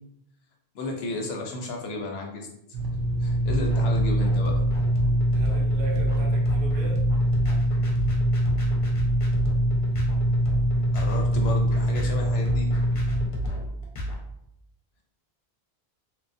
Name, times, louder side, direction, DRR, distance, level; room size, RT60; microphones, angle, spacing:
voice 1, 0.7-2.5 3.2-4.5 10.9-12.7, left 2 dB, 80° left, 1 dB, 0.9 m, -33 dB
sound 1, 2.7-13.3, equal, 90° right, 1.0 m, -24 dB
sound 2, 3.5-14.1, equal, 40° left, 0.6 m, -31 dB
voice 2, 5.3-7.1, right 3 dB, 65° right, 0 dB, 0.7 m, -37 dB
2.9 x 2.3 x 2.5 m, 0.77 s
omnidirectional pair, 1.1 m